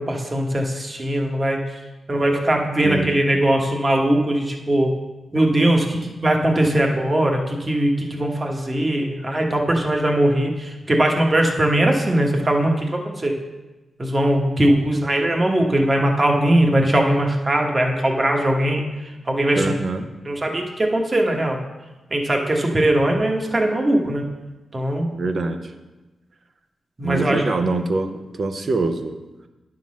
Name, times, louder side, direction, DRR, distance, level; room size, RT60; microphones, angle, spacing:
voice 1, 0.0-1.6 2.1-4.9 5.3-13.4 14.0-18.8 19.3-19.7 20.3-21.6 22.1-24.2 24.7-25.1 27.0-27.4, right 1 dB, 30° right, 1 dB, 1.3 m, -20 dB
voice 2, 2.8-3.2 19.5-20.1 25.1-25.7 27.0-29.2, right 3 dB, 50° right, 7 dB, 0.8 m, -24 dB
9.6 x 3.8 x 6.3 m, 1.1 s
cardioid pair, 80°, 0 cm